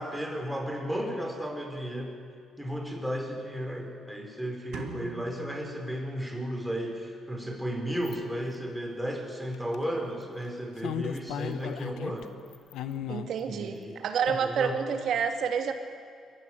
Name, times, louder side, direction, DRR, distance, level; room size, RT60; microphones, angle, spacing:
voice 1, 0.0-2.2 2.6-12.3 13.4-14.0 14.3-14.8, equal, 5° right, 2 dB, 4.5 m, -34 dB
sound 1, 4.7-6.7, right 3 dB, 85° right, 2.4 m, -43 dB
sound 2, 8.0-8.2 9.5-9.8 10.5-10.6 10.8-12.3 12.5-13.3 14.3-14.4, left 9 dB, 85° left, 1.0 m, -35 dB
voice 2, 13.1-15.7, right 7 dB, 70° right, 6 dB, 2.3 m, -29 dB
22.5 x 15.0 x 10.0 m, 2.2 s
cardioid pair, 90°, 0 cm